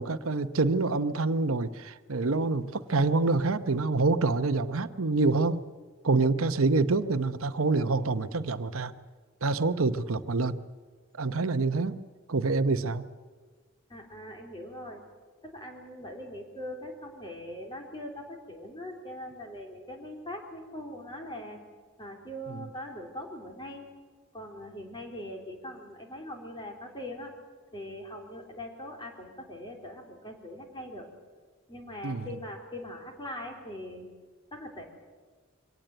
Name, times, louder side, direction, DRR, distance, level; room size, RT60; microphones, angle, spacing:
voice 1, 0.0-5.6 6.0-8.9 9.4-10.6 11.1-12.0 12.3-13.0 22.5-22.6 32.0-32.3, right 3 dB, 90° right, 12 dB, 0.9 m, -26 dB
voice 2, 13.9-15.0 15.4-21.6 22.0-23.9 24.3-27.3 27.7-31.1 31.7-34.1 34.5-34.8, left 1 dB, 25° left, 2 dB, 3.5 m, -41 dB
23.0 x 18.0 x 7.9 m, 1.5 s
head